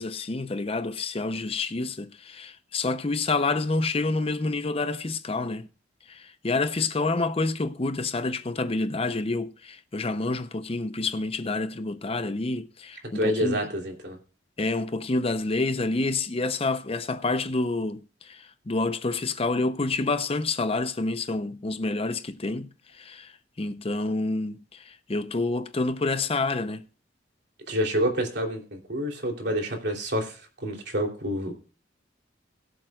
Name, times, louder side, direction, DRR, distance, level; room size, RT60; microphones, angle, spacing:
voice 1, 0.0-5.7 6.1-13.6 14.6-26.8, left 3 dB, 30° left, 0.6 m, -28 dB
voice 2, 13.1-14.2 27.7-31.5, equal, 60° right, 3.0 m, -28 dB
21.5 x 7.6 x 2.3 m
head